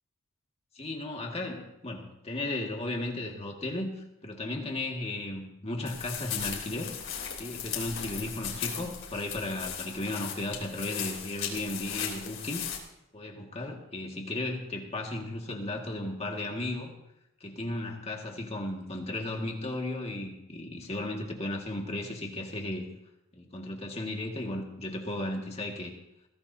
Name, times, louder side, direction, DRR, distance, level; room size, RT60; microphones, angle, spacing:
voice 1, 0.8-6.9 7.4-12.7 13.1-16.9 17.4-22.9 23.3-25.9, left 1 dB, 30° left, 1 dB, 1.9 m, -35 dB
sound 1, 5.8-12.8, left 8 dB, 70° left, 3.4 m, -37 dB
21.0 x 16.5 x 2.8 m, 0.86 s
head